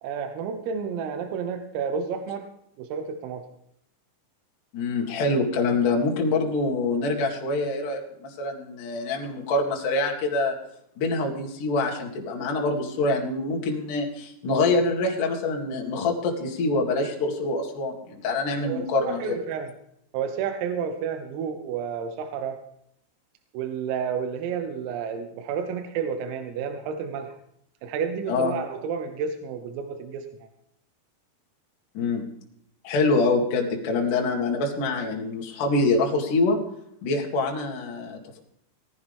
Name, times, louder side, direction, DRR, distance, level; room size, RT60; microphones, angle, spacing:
voice 1, 0.0-2.5 2.8-3.4 18.6-19.7 20.1-22.6 23.5-27.4 27.8-30.3, right 6 dB, 85° right, 6 dB, 3.6 m, -31 dB
voice 2, 4.7-10.5 11.0-19.4 28.3-28.5 31.9-32.3 32.8-36.6 37.0-38.4, left 3 dB, 50° left, 0 dB, 2.8 m, -25 dB
18.5 x 14.5 x 3.5 m, 0.75 s
omnidirectional pair, 6.0 m